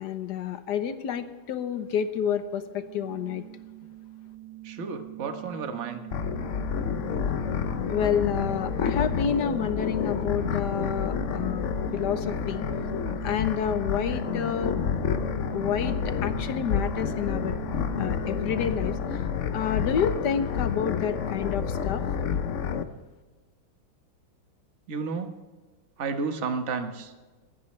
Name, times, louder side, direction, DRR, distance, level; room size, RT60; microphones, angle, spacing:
voice 1, 0.0-3.4 7.9-12.6 13.2-14.7 15.5-15.9 16.2-17.5 18.0-19.0 19.5-22.0, left 8 dB, 60° left, 10 dB, 1.3 m, -29 dB
sound 1, 2.5-20.0, right 16 dB, 75° right, 1.8 m, -40 dB
voice 2, 4.6-6.1 13.0-13.1 24.9-25.4 26.0-27.1, right 5 dB, 40° right, 6 dB, 1.3 m, -32 dB
sound 2, 6.1-22.8, left 7 dB, 90° left, 0.6 m, -29 dB
26.0 x 9.7 x 3.2 m, 1.3 s
omnidirectional pair, 2.3 m